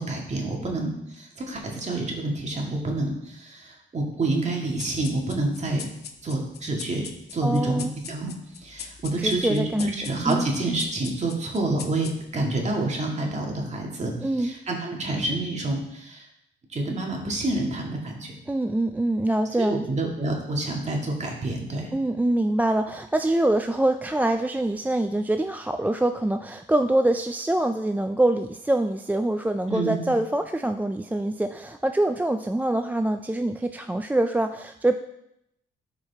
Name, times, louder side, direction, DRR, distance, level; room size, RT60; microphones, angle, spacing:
voice 1, 0.0-5.9 6.2-16.3 16.7-18.3 19.6-21.9 29.7-30.2, right 2 dB, 35° right, 0 dB, 2.2 m, -28 dB
sound 1, 4.8-12.5, left 7 dB, 55° left, 0.9 m, -42 dB
voice 2, 7.4-7.9 9.2-9.9 10.3-10.5 14.2-14.6 18.5-19.9 21.9-35.0, right 1 dB, 10° right, 7 dB, 0.4 m, -24 dB
13.0 x 4.8 x 3.5 m, 0.80 s
cardioid pair, 90°, 20 cm